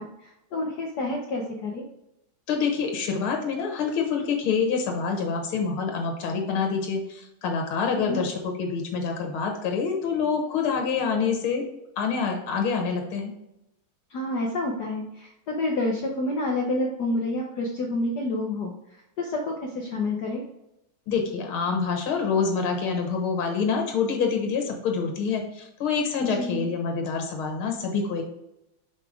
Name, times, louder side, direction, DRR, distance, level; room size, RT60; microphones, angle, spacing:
voice 1, 0.0-1.8 7.9-8.2 14.1-18.7 19.2-20.4 26.2-26.7, left 2 dB, 60° left, -1 dB, 1.2 m, -29 dB
voice 2, 2.5-11.6 12.0-13.3 21.1-28.2, left 5 dB, 75° left, 3 dB, 2.1 m, -26 dB
5.9 x 5.4 x 3.6 m, 0.84 s
omnidirectional pair, 2.3 m